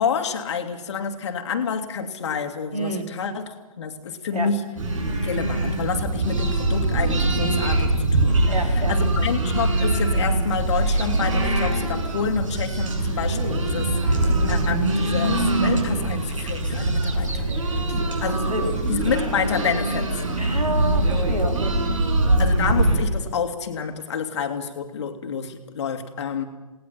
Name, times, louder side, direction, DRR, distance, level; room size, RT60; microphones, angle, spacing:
voice 1, 0.0-4.7 5.0-7.9 8.2-17.5 17.9-20.2 22.4-26.4, left 6 dB, 45° left, 6 dB, 2.4 m, -28 dB
voice 2, 2.7-3.1 4.3-4.5 8.5-9.3 18.5-18.7 20.4-22.1, right 1 dB, 80° right, 3 dB, 3.9 m, -29 dB
sound 1, 4.8-23.0, right 2 dB, 55° right, 6.2 m, -23 dB
28.5 x 19.0 x 5.9 m, 1.1 s
figure-of-eight pair, 135°, 19 cm